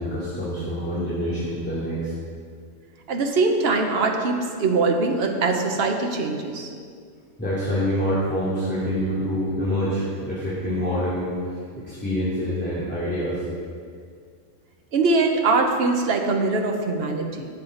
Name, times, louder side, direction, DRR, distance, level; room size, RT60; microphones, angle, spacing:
voice 1, 0.0-2.1 7.4-11.3 11.8-13.4, equal, 10° left, -10 dB, 2.6 m, -26 dB
voice 2, 3.1-6.7 14.9-17.5, right 3 dB, 50° right, 3 dB, 1.2 m, -22 dB
17.0 x 7.6 x 4.0 m, 2.1 s
omnidirectional pair, 1.3 m